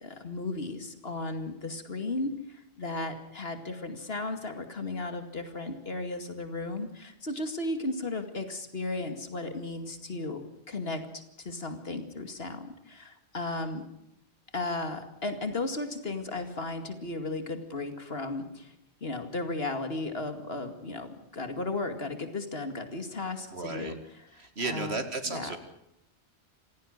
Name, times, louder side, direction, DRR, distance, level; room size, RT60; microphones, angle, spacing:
voice 1, 0.0-13.8 14.5-18.8 19.0-25.6, left 2 dB, 65° left, 7 dB, 2.5 m, -35 dB
voice 2, 23.5-24.0 24.4-25.6, right 3 dB, 70° right, 8 dB, 2.6 m, -34 dB
27.0 x 17.0 x 6.6 m, 0.82 s
omnidirectional pair, 1.1 m